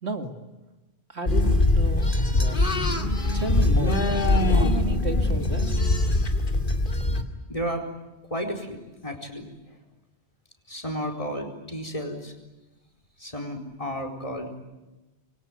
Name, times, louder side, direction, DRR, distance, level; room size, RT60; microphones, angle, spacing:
voice 1, 0.0-0.3 1.1-2.7 3.3-4.1 4.5-5.8, right 3 dB, 70° right, 4 dB, 2.5 m, -33 dB
sound 1, 1.3-7.2, left 2 dB, 50° left, 2.5 m, -22 dB
voice 2, 7.5-7.9 8.3-9.5 10.7-12.3 13.2-14.6, equal, 30° left, 5 dB, 4.5 m, -32 dB
27.0 x 23.0 x 9.5 m, 1.1 s
omnidirectional pair, 1.1 m